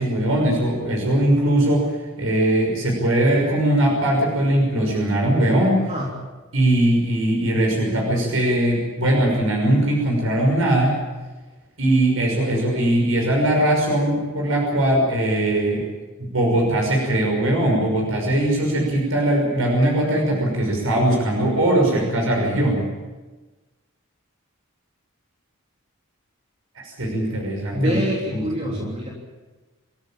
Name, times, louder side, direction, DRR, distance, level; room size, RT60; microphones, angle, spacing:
voice 1, 0.0-5.8 6.5-11.0 11.8-15.9 16.3-22.9 26.8-28.0 28.3-28.4, right 1 dB, 80° right, 0 dB, 6.0 m, -20 dB
voice 2, 27.7-29.1, equal, 30° right, -2 dB, 3.4 m, -25 dB
27.5 x 14.5 x 9.0 m, 1.2 s
head